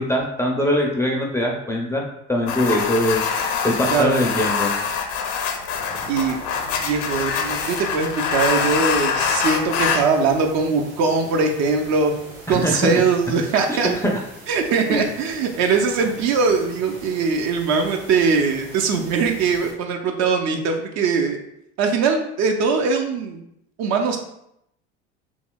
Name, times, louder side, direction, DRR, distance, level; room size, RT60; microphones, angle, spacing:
voice 1, 0.0-2.0 2.3-3.2 3.6-4.7 12.5-12.9 13.7-13.8 14.0-14.1 14.9-15.0, equal, 10° left, -1 dB, 0.4 m, -22 dB
sound 1, 2.5-10.1, left 6 dB, 65° left, 0.5 m, -24 dB
sound 2, 5.7-19.7, right 1 dB, 75° right, 1.4 m, -42 dB
voice 2, 6.1-6.4 6.8-12.1 12.5-13.9 14.5-21.4 21.8-23.4 23.8-24.2, right 4 dB, 55° right, 3 dB, 0.6 m, -21 dB
3.0 x 2.7 x 2.2 m, 0.77 s
hypercardioid pair, 75°, 34 cm